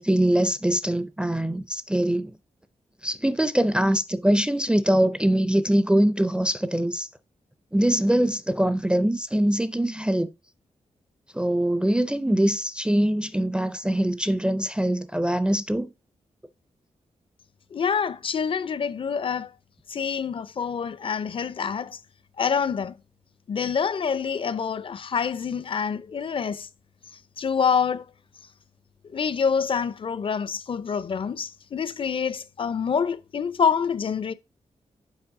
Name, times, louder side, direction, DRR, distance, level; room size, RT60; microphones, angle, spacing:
voice 1, 0.0-2.3 3.0-7.1 7.7-10.3 11.3-15.9, right 1 dB, 10° right, 0.4 m, -23 dB
voice 2, 17.7-19.5 19.9-22.0 22.4-23.0 23.5-26.7 27.4-28.1 29.1-34.3, left 6 dB, 45° left, 0.5 m, -26 dB
7.2 x 4.5 x 3.6 m
cardioid pair, 90°, 12 cm